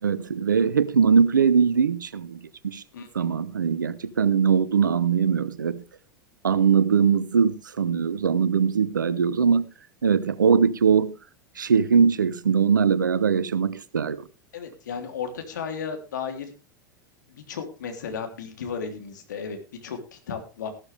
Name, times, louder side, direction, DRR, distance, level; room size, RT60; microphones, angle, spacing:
voice 1, 0.0-2.8 3.1-5.8 6.4-9.7 10.0-11.1 11.6-14.3, right 6 dB, 75° right, 0.9 m, -21 dB
voice 2, 14.5-16.5 17.3-20.7, left 6 dB, 65° left, 3.2 m, -34 dB
14.5 x 13.0 x 3.4 m
figure-of-eight pair, 85°, 10 cm